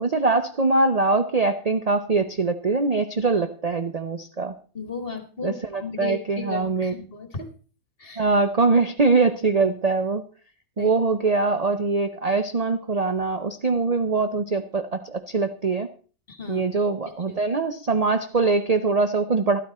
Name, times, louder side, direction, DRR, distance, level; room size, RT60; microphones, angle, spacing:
voice 1, 0.0-4.5 5.4-6.9 8.2-10.2 10.8-15.9 16.5-19.6, right 3 dB, 50° right, 8 dB, 0.4 m, -23 dB
voice 2, 4.7-7.5 8.0-8.3 10.8-10.9 16.3-16.6 17.3-17.4, left 4 dB, 35° left, 6 dB, 1.9 m, -34 dB
12.5 x 12.5 x 4.2 m, 0.39 s
omnidirectional pair, 1.8 m